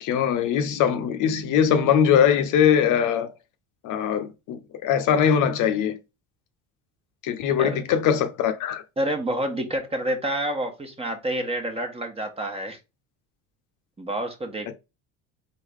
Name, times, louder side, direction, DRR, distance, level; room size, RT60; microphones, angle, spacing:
voice 1, 0.0-3.3 3.8-6.0 7.2-8.8, left 8 dB, 60° left, 0.8 m, -21 dB
voice 2, 9.0-12.8 14.0-14.7, right 1 dB, 15° right, 1.2 m, -28 dB
4.0 x 3.7 x 3.6 m
supercardioid pair, 105°, 35 cm